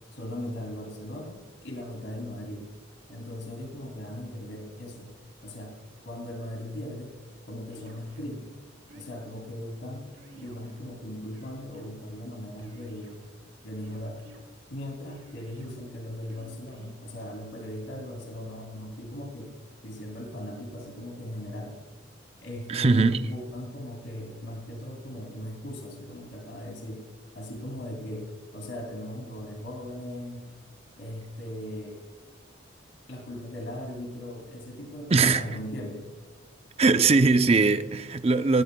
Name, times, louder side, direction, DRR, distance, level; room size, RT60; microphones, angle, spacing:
voice 1, 0.1-2.7 3.1-5.1 5.4-5.7 6.0-7.1 7.5-8.6 8.9-10.1 10.3-13.2 13.6-14.2 14.7-19.5 19.8-21.8 22.4-27.1 27.3-28.3 28.5-30.5 31.0-32.0 33.1-36.1, left 1 dB, 90° left, 2.8 m, -38 dB
sound 1, 7.7-8.3 8.9-9.4 10.1-10.9 11.3-12.0 12.6-13.3 13.8-14.4 15.1-15.7 16.3-16.9, right 1 dB, 85° right, 3.0 m, -52 dB
voice 2, 22.7-23.2 35.1-35.5 36.8-38.6, right 3 dB, 30° right, 0.5 m, -21 dB
17.5 x 17.0 x 2.3 m
head